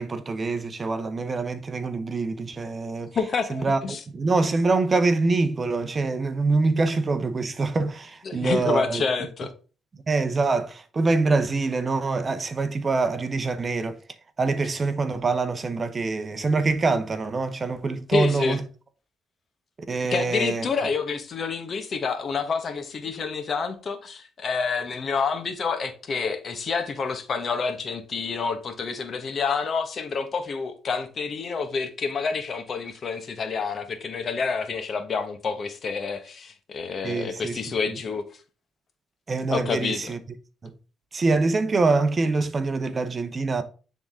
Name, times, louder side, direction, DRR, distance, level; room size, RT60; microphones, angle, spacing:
voice 1, 0.0-3.1 3.5-3.8 4.1-9.0 10.1-14.0 14.4-18.6 19.9-20.7 37.0-37.6 37.9-38.0 39.3-40.2 40.6-40.7 41.1-43.6, right 3 dB, 35° right, 0.8 m, -25 dB
voice 2, 3.1-4.0 8.2-9.5 18.1-18.6 20.1-38.2 39.5-40.1, left 5 dB, 50° left, 1.2 m, -28 dB
9.6 x 3.7 x 3.6 m
cardioid pair, 90°, 0 cm